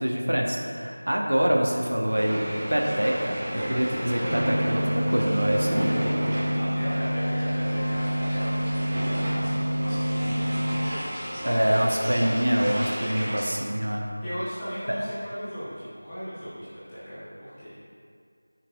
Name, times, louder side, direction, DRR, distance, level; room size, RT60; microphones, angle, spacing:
voice 1, 0.0-2.4 2.7-4.8 5.1-6.1 11.4-14.1 14.9-15.0, equal, 80° right, 0 dB, 1.4 m, -25 dB
sound 1, 2.1-13.6, right 1 dB, 15° right, 1.3 m, -33 dB
sound 2, 4.3-10.9, equal, 60° right, 0.7 m, -27 dB
voice 2, 6.5-10.8 13.0-13.4 14.2-17.7, equal, 10° left, -16 dB, 1.3 m, -37 dB
sound 3, 6.6-12.1, left 1 dB, 85° left, 0.8 m, -41 dB
14.0 x 6.4 x 2.6 m, 2.3 s
figure-of-eight pair, 175°, 0 cm